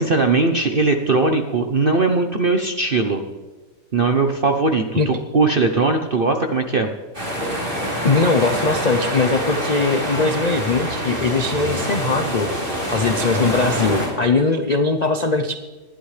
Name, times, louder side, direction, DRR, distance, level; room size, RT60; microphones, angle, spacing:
voice 1, 0.0-3.2 3.9-6.9, right 3 dB, 45° right, 5 dB, 0.7 m, -19 dB
sound 1, 7.1-14.1, equal, 30° right, 4.3 m, -25 dB
voice 2, 8.0-15.6, left 3 dB, 80° left, 7 dB, 0.3 m, -20 dB
19.5 x 12.0 x 3.3 m, 1.3 s
omnidirectional pair, 1.8 m